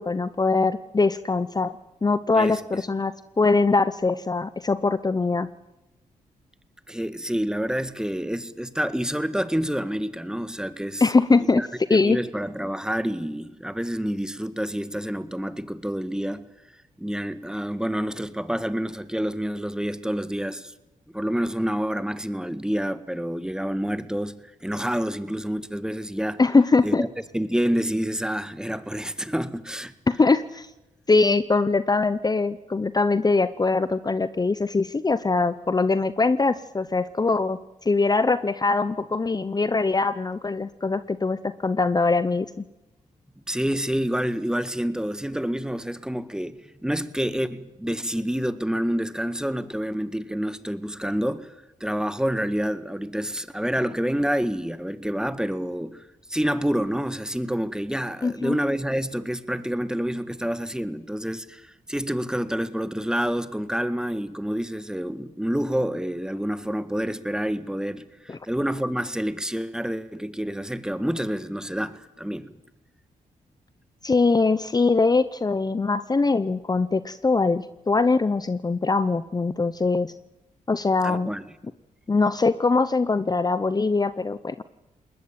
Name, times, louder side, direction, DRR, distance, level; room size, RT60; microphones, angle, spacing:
voice 1, 0.0-1.7 2.0-5.5 11.0-11.6 11.9-12.2 26.4-27.0 30.1-30.7 31.1-42.6 58.2-58.6 68.3-68.4 74.0-80.1 80.7-81.3 82.1-84.6, left 3 dB, 25° left, 0.8 m, -22 dB
voice 2, 2.3-2.8 6.9-11.1 11.5-16.4 17.0-20.7 21.1-24.3 24.6-26.4 26.8-27.1 27.3-29.9 43.5-51.5 51.8-56.0 56.3-72.5 81.0-81.4, equal, 5° right, 1.7 m, -28 dB
21.0 x 20.0 x 8.9 m
cardioid pair, 70°, 15 cm